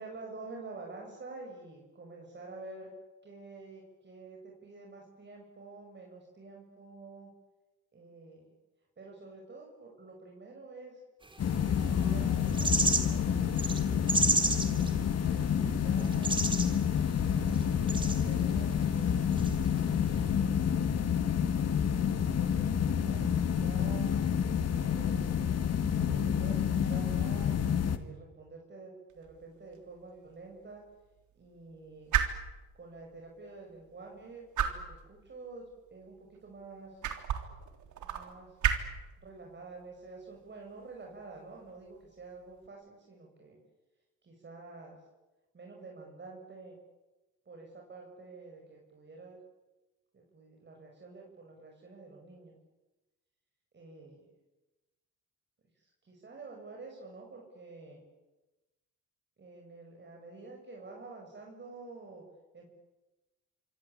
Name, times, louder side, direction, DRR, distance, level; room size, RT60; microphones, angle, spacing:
voice 1, 0.0-2.9 3.2-7.3 7.9-8.5 9.0-11.0 11.9-13.6 14.1-14.8 15.3-16.4 17.0-19.3 20.3-20.9 22.3-24.3 24.9-30.8 31.4-32.1 32.7-37.0 38.0-38.6 39.2-43.6 44.2-45.0 45.5-46.8 47.5-49.4 50.1-52.6 53.7-54.3 55.8-58.0 59.4-62.2 62.5-62.6, right 3 dB, 35° right, 0 dB, 6.9 m, -49 dB
sound 1, 11.4-28.0, left 8 dB, 55° left, 2.2 m, -29 dB
sound 2, 11.5-13.2 13.4-15.2 15.6-15.7 16.0-16.8 17.2-18.2 18.7-18.8 19.3-19.5, right 2 dB, 15° right, 3.6 m, -31 dB
sound 3, 29.1-42.7, right 9 dB, 75° right, 3.6 m, -38 dB
27.0 x 24.0 x 8.8 m, 1.1 s
cardioid pair, 90°, 30 cm